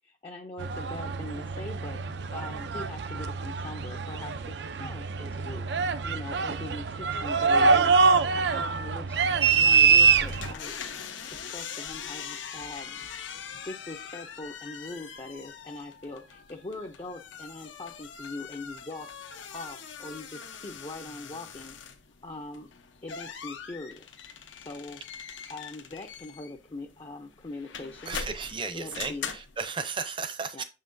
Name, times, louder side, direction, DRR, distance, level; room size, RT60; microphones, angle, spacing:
voice 1, 0.0-2.0 2.3-5.7 6.0-9.2 9.5-10.8 11.3-13.0 13.6-19.1 19.5-21.7 22.2-22.7 23.0-24.0 24.6-25.0 25.5-28.2 28.7-29.3 30.5-30.6, left 2 dB, 30° left, 0.5 m, -41 dB
sound 1, 0.6-10.5, right 5 dB, 65° right, 0.4 m, -24 dB
sound 2, 10.0-29.7, left 6 dB, 90° left, 0.8 m, -42 dB
voice 2, 28.1-30.6, right 5 dB, 25° right, 0.6 m, -35 dB
7.0 x 5.6 x 2.6 m
head